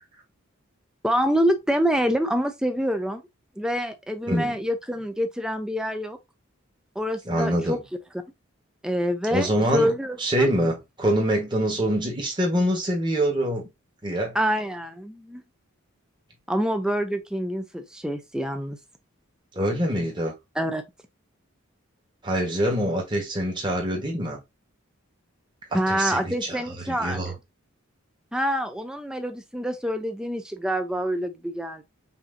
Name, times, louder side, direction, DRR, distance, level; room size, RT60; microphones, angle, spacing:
voice 1, 1.0-3.2 3.6-6.2 7.0-7.8 8.8-10.5 14.3-15.4 16.5-18.8 20.6-20.8 25.7-27.4 28.3-31.8, equal, 5° right, 0.5 m, -26 dB
voice 2, 7.2-7.8 9.3-9.9 10.2-13.6 14.0-14.4 19.5-20.3 22.2-24.4 25.7-27.3, right 1 dB, 20° right, 1.3 m, -25 dB
5.7 x 2.7 x 2.6 m
head